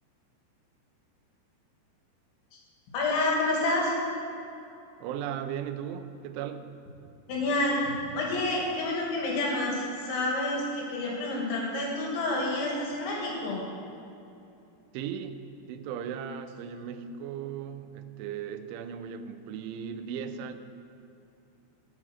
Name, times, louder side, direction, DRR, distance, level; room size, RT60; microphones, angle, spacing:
voice 1, 2.9-3.9 7.3-13.6, left 2 dB, 75° left, -3 dB, 4.5 m, -28 dB
voice 2, 5.0-6.8 14.9-15.4 15.7-20.6, right 8 dB, 85° right, 10 dB, 3.1 m, -37 dB
13.0 x 9.0 x 6.3 m, 2.8 s
omnidirectional pair, 5.4 m